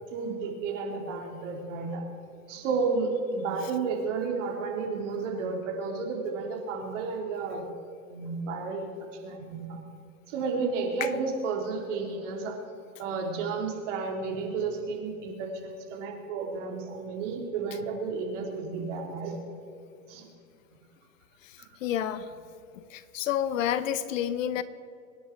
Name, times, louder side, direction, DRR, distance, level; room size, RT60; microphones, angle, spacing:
voice 1, 0.1-2.0 2.5-7.7 8.1-8.9 9.2-9.8 10.3-12.5 13.0-19.4 20.1-20.2 21.6-21.7, right 4 dB, 50° right, 1 dB, 3.3 m, -32 dB
voice 2, 21.8-22.3 22.9-24.6, left 10 dB, 55° left, 14 dB, 1.1 m, -29 dB
24.5 x 10.0 x 4.6 m, 2.4 s
hypercardioid pair, 145°, 46 cm